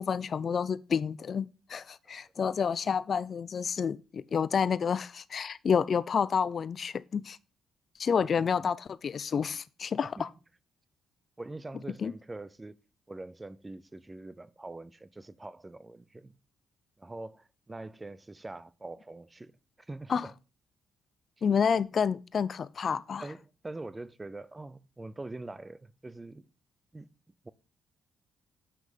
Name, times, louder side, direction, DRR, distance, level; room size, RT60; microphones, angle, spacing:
voice 1, 0.0-7.4 8.0-10.3 12.0-12.1 20.1-20.3 21.4-23.2, left 6 dB, 50° left, 0.4 m, -29 dB
voice 2, 11.4-12.8 13.1-16.3 17.0-19.5 19.8-20.3 23.2-26.5 26.9-27.1 27.4-27.5, right 2 dB, 15° right, 0.5 m, -44 dB
7.6 x 6.3 x 5.1 m
cardioid pair, 90°, 0 cm